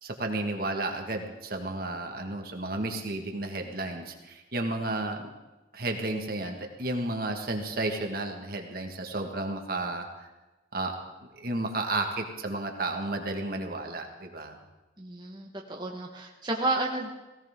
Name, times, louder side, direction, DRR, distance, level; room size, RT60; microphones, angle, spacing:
voice 1, 0.0-5.3 5.7-10.3 10.7-11.0 11.3-14.6, right 2 dB, 50° right, 3 dB, 1.7 m, -32 dB
voice 2, 15.0-17.1, right 2 dB, 25° right, -1 dB, 1.4 m, -31 dB
17.5 x 17.5 x 3.7 m, 1.1 s
head